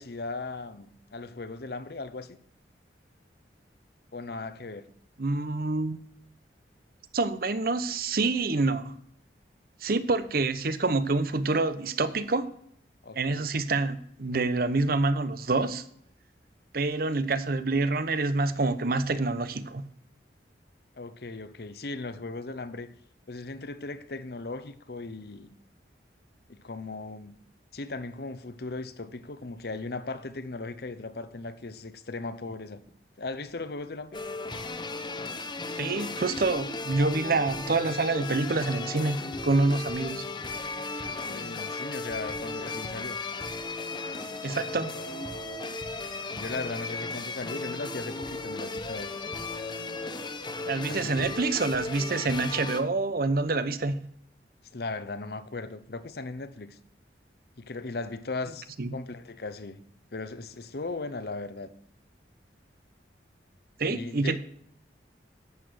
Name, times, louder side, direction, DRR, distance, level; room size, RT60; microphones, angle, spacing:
voice 1, 0.0-2.4 4.1-4.9 13.0-13.5 21.0-22.9 23.3-25.5 26.5-27.4 27.7-32.8 33.2-34.2 41.0-43.2 46.0-49.2 50.9-51.1 54.7-56.8 57.6-59.8 60.1-61.7 63.9-64.4, left 3 dB, 60° left, 0.8 m, -38 dB
voice 2, 5.2-6.0 7.1-9.0 9.8-12.5 13.1-15.8 16.7-19.8 35.8-40.2 44.4-45.0 50.7-54.0 58.8-59.0 63.8-64.4, right 3 dB, 55° right, 0.8 m, -27 dB
sound 1, 34.1-52.8, left 3 dB, 25° left, 0.9 m, -36 dB
11.0 x 8.2 x 6.3 m
head